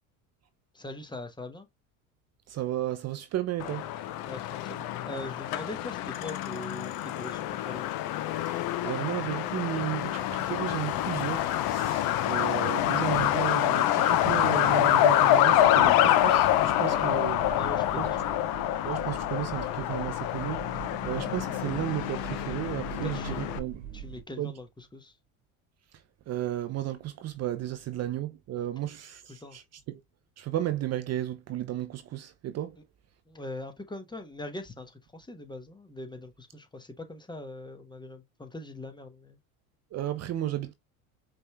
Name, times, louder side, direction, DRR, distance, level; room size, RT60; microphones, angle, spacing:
voice 1, 0.7-1.7 4.3-7.9 16.9-17.1 17.5-18.4 23.0-25.2 29.3-29.6 33.3-39.4, left 2 dB, 10° left, 1.0 m, -42 dB
voice 2, 2.5-3.9 8.5-17.4 18.0-18.1 18.8-23.8 24.4-24.5 26.3-30.0 30.4-32.8 39.9-40.7, right 13 dB, 40° right, 0.6 m, -34 dB
Truck, 3.6-23.6, left 12 dB, 55° left, 0.7 m, -26 dB
sound 1, 15.5-24.2, right 10 dB, 90° right, 1.4 m, -44 dB
5.2 x 3.3 x 2.2 m
hypercardioid pair, 85°, 42 cm